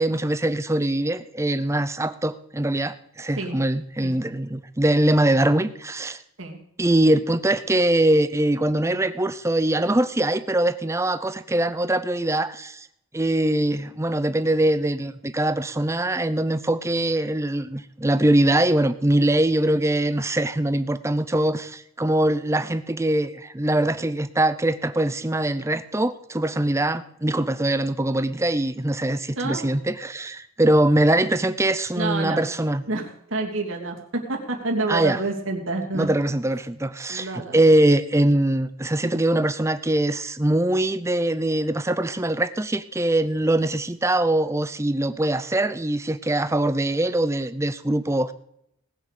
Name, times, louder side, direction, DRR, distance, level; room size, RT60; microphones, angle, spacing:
voice 1, 0.0-6.2 6.8-12.9 13.1-32.8 34.9-35.2 35.9-48.3, right 1 dB, 15° right, 13 dB, 0.6 m, -22 dB
voice 2, 29.3-29.7 31.9-32.5 32.9-36.1 37.1-37.6, right 3 dB, 65° right, 1 dB, 2.9 m, -28 dB
19.0 x 7.4 x 6.7 m, 0.76 s
head